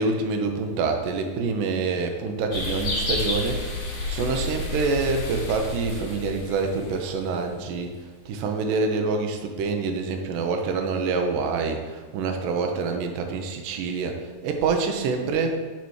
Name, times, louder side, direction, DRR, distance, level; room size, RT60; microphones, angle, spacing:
voice 1, 0.0-3.7 4.1-7.9 8.3-15.6, right 4 dB, 75° right, 4 dB, 2.2 m, -26 dB
sound 1, 2.5-7.5, left 2 dB, 40° left, 1.6 m, -30 dB
8.6 x 4.1 x 4.7 m, 1.5 s
omnidirectional pair, 4.2 m